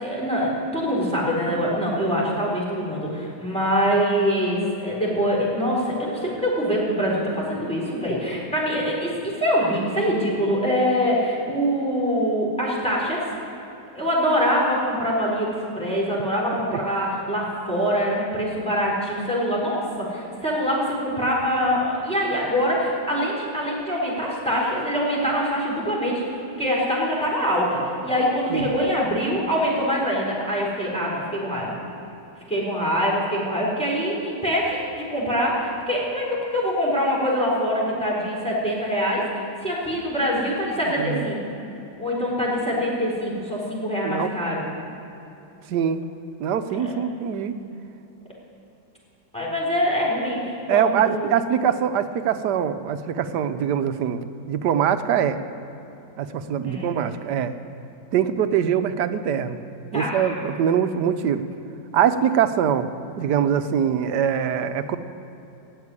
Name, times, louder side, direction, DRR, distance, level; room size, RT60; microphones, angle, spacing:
voice 1, 0.0-13.2 13.9-31.7 32.5-39.2 39.6-41.4 42.0-44.6 46.7-46.9 49.3-51.3 56.6-56.9 59.9-60.4, equal, 5° left, -5 dB, 4.0 m, -24 dB
voice 2, 41.0-41.3 44.0-44.3 45.7-46.0 46.4-47.6 50.7-55.4 56.2-57.5 58.1-59.6 59.9-61.4 61.9-62.9 63.2-65.0, right 8 dB, 75° right, 10 dB, 1.3 m, -23 dB
13.5 x 8.4 x 9.7 m, 2.9 s
omnidirectional pair, 1.9 m